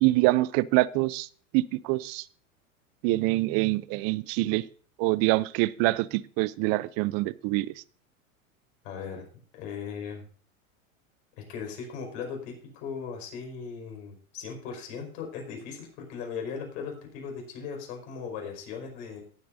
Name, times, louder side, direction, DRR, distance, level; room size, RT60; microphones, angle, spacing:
voice 1, 0.0-1.3 1.5-2.3 3.0-4.7 5.0-7.7, right 20 dB, 35° right, 20 dB, 0.4 m, -25 dB
voice 2, 8.8-9.3 9.5-10.2 11.4-19.2, left 6 dB, 60° left, 2 dB, 5.2 m, -38 dB
18.0 x 8.4 x 2.7 m, 0.44 s
hypercardioid pair, 110°, 41 cm